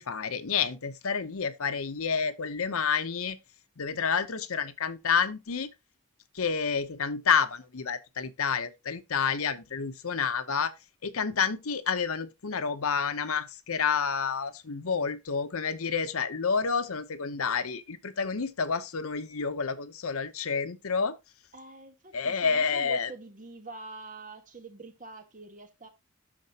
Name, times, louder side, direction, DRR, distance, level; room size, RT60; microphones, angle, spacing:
voice 1, 0.0-3.4 3.8-5.7 6.3-10.7 11.0-21.1 22.1-23.1, left 6 dB, 80° left, 0.8 m, -29 dB
voice 2, 21.5-25.9, right 3 dB, 35° right, 1.4 m, -45 dB
12.5 x 4.3 x 2.9 m
head